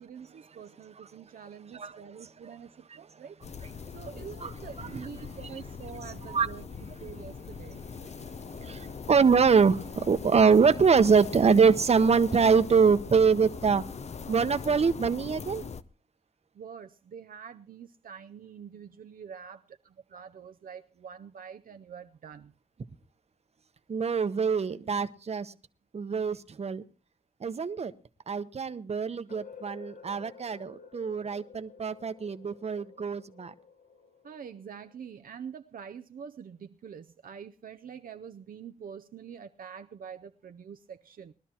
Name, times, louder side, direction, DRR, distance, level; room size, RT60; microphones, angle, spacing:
voice 1, 0.0-2.7 3.0-3.3 3.9-6.6 7.0-7.8 16.6-22.5 34.2-41.3, right 7 dB, 75° right, 0.5 m, -45 dB
voice 2, 1.7-2.5 2.9-3.0 4.4-4.5 4.8-5.1 6.3-6.5 8.2-13.8 14.3-15.7 23.9-25.5 25.9-26.8 27.4-27.9 28.3-33.5, right 5 dB, 45° right, 0.8 m, -24 dB
sound 1, 3.4-15.8, left 5 dB, 50° left, 0.6 m, -41 dB
sound 2, 29.3-35.2, left 6 dB, 65° left, 1.0 m, -52 dB
21.0 x 12.5 x 2.9 m
wide cardioid pair, 120°, 15 cm